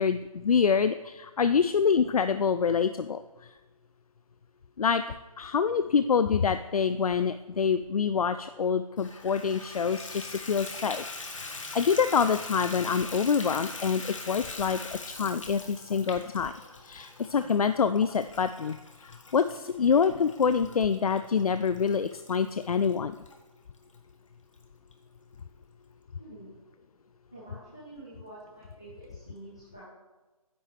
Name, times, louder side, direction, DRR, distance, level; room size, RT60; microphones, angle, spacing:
voice 1, 0.0-3.2 4.8-11.0 11.3-16.5 16.8-18.8 19.0-23.2, left 6 dB, 75° left, 11 dB, 0.4 m, -26 dB
Water tap faucet / Bathtub (filling or washing), 9.0-23.4 23.9-24.0 24.5-24.6 24.9-25.0, left 3 dB, 55° left, 1.4 m, -42 dB
voice 2, 26.2-26.6 27.3-29.9, right 1 dB, 10° left, -9 dB, 0.5 m, -47 dB
9.6 x 8.4 x 3.5 m, 1.2 s
hypercardioid pair, 180°, 19 cm